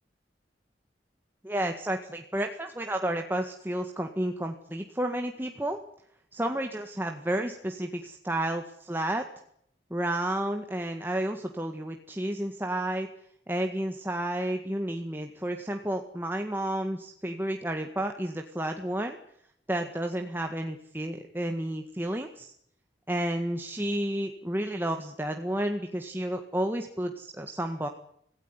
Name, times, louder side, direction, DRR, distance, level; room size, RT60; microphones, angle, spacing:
voice 1, 1.4-5.8 6.3-9.2 9.9-13.1 13.5-19.2 19.7-22.5 23.1-27.9, right 1 dB, 10° right, 4 dB, 1.8 m, -31 dB
27.0 x 17.0 x 9.8 m, 0.72 s
head